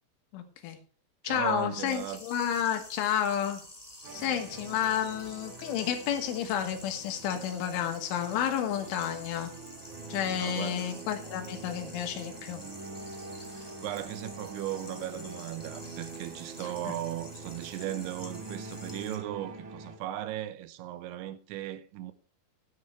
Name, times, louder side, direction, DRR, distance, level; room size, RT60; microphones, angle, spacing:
voice 1, 0.3-0.8 1.2-3.6 4.1-9.5 10.1-12.6 16.9-17.0, left 9 dB, 90° left, 3.9 m, -31 dB
voice 2, 1.2-2.2 10.4-10.9 13.4-22.1, right 12 dB, 80° right, 3.1 m, -37 dB
sound 1, 1.9-19.1, left 1 dB, 5° left, 1.9 m, -49 dB
sound 2, 4.0-20.0, right 3 dB, 65° right, 2.0 m, -45 dB
13.5 x 9.5 x 3.3 m
omnidirectional pair, 5.4 m